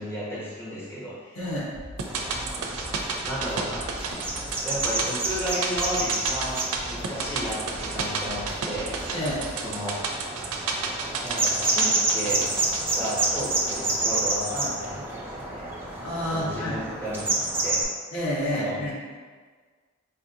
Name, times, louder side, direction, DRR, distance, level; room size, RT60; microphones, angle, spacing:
voice 1, 0.0-1.4 3.2-3.9 4.6-9.0 9.6-10.0 11.2-12.4 12.9-15.7 16.3-17.2 17.6-17.8 18.5-18.8, equal, 10° left, -9 dB, 0.7 m, -33 dB
voice 2, 1.4-1.7 9.1-9.5 16.0-16.8 18.1-19.0, equal, 80° left, -7 dB, 1.1 m, -29 dB
sound 1, 1.7-9.7, left 1 dB, 60° left, 0.7 m, -43 dB
sound 2, 2.0-14.3 14.6-14.7, right 4 dB, 80° right, 0.4 m, -32 dB
sound 3, 2.1-17.8, right 2 dB, 10° right, 0.4 m, -29 dB
4.1 x 2.4 x 2.7 m, 1.5 s
head